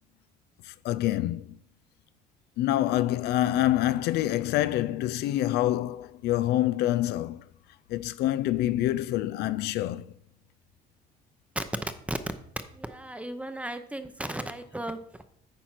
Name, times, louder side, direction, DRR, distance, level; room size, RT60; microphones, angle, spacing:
voice 1, 0.6-1.6 2.6-7.5 7.9-10.1, left 14 dB, 75° left, 0.4 m, -26 dB
voice 2, 12.7-15.3, right 1 dB, 5° right, 0.7 m, -35 dB
9.2 x 4.2 x 5.9 m
cardioid pair, 110°, 17 cm